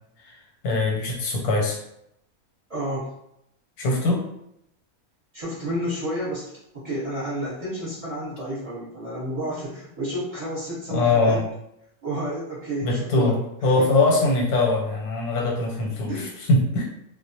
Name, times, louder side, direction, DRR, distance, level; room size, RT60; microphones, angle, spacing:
voice 1, 0.6-1.8 3.8-4.3 10.9-11.4 12.8-16.9, left 2 dB, 90° left, -1 dB, 1.2 m, -22 dB
voice 2, 2.7-3.1 5.3-11.4 12.0-13.4 13.8-13.9 16.1-16.3, right 1 dB, 30° right, -10 dB, 0.9 m, -30 dB
2.4 x 2.1 x 2.7 m, 0.78 s
omnidirectional pair, 1.5 m